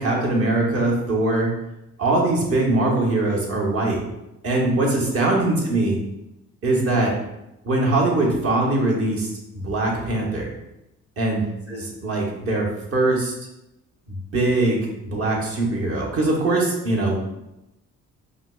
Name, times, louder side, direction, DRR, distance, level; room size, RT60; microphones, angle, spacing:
voice 1, 0.0-1.5 2.0-4.0 4.4-6.0 6.6-7.1 7.6-9.3 9.5-10.5 11.2-11.4 11.7-13.3 14.1-14.8 15.1-17.2, right 2 dB, 50° right, -1 dB, 1.0 m, -22 dB
4.9 x 2.1 x 2.3 m, 0.91 s
cardioid pair, 90°, 30 cm